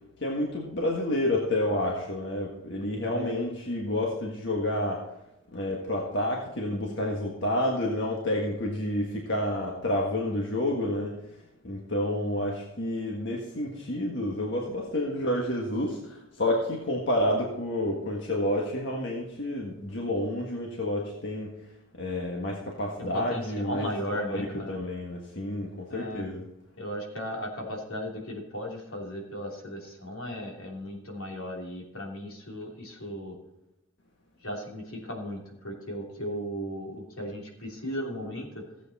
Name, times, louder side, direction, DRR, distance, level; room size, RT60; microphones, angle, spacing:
voice 1, 0.2-5.0 5.5-11.1 11.6-21.5 21.9-26.4, left 1 dB, 55° left, -1 dB, 1.6 m, -29 dB
voice 2, 3.1-3.4 23.0-24.8 25.9-26.3 26.8-33.3 34.4-38.6, equal, 80° left, 0 dB, 3.0 m, -36 dB
15.5 x 8.2 x 4.2 m, 0.90 s
head